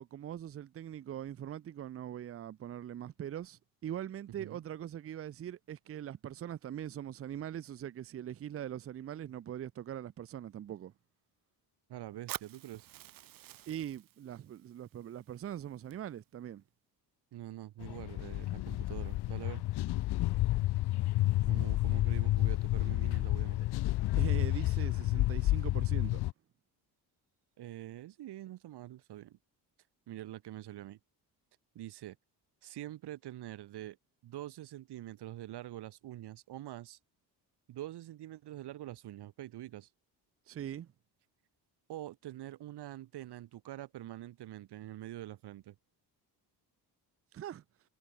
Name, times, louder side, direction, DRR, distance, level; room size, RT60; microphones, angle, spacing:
voice 1, 0.0-10.9 13.7-16.6 24.2-26.2 40.5-40.9 47.3-47.6, right 10 dB, 35° right, 0.7 m, -42 dB
voice 2, 11.9-12.9 17.3-19.6 21.5-23.7 27.6-29.4 30.1-31.0 31.7-32.2 32.6-34.0 34.2-37.0 37.7-39.9 41.9-45.7, right 14 dB, 75° right, 4.2 m, -45 dB
Fire, 12.3-16.3, right 13 dB, 55° right, 1.0 m, -48 dB
sound 1, 17.8-26.3, left 16 dB, 70° left, 0.9 m, -30 dB
cardioid pair, 165°, 41 cm